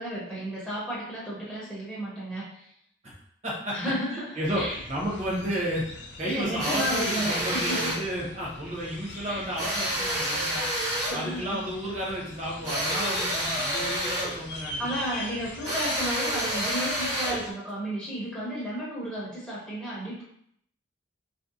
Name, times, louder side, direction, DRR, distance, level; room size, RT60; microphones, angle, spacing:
voice 1, 0.0-2.7 3.7-4.8 6.2-7.9 9.3-9.5 11.1-11.6 14.8-20.2, equal, 5° left, -8 dB, 0.5 m, -33 dB
voice 2, 3.4-3.8 4.1-5.9 6.2-10.7 11.1-14.9, equal, 35° right, -4 dB, 0.8 m, -32 dB
sound 1, 4.4-17.5, left 2 dB, 60° left, 0.3 m, -41 dB
sound 2, 6.6-8.1 9.6-11.2 12.6-14.4 15.6-17.5, equal, 65° right, 1.2 m, -29 dB
2.5 x 2.1 x 2.5 m, 0.69 s
head